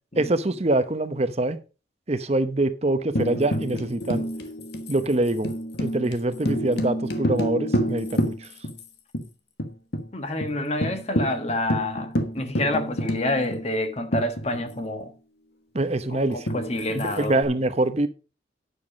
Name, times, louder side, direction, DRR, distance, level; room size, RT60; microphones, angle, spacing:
voice 1, 0.2-1.6 2.1-4.3 4.9-5.5 5.8-8.5 15.7-16.5 16.9-18.1, right 2 dB, 35° right, 0.8 m, -24 dB
Tambourine, 3.2-8.8 9.1-9.2 9.6-10.1 10.4-10.5 10.8-14.9 16.5-17.4, equal, 60° left, 1.3 m, -29 dB
voice 2, 10.1-15.1 16.1-17.3, left 1 dB, 35° left, 1.4 m, -28 dB
9.7 x 7.0 x 5.0 m
head